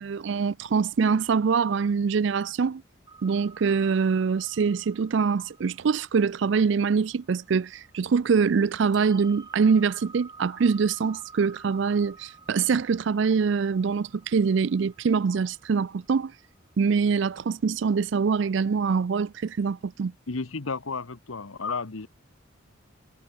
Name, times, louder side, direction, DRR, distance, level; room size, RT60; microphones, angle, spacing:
voice 1, 0.0-2.8 3.2-16.3 16.8-20.1, right 5 dB, 60° right, 0.4 m, -24 dB
sound 1, 3.1-8.2 8.9-16.4, right 4 dB, 20° right, 7.9 m, -51 dB
voice 2, 20.3-22.1, left 4 dB, 85° left, 1.1 m, -32 dB
head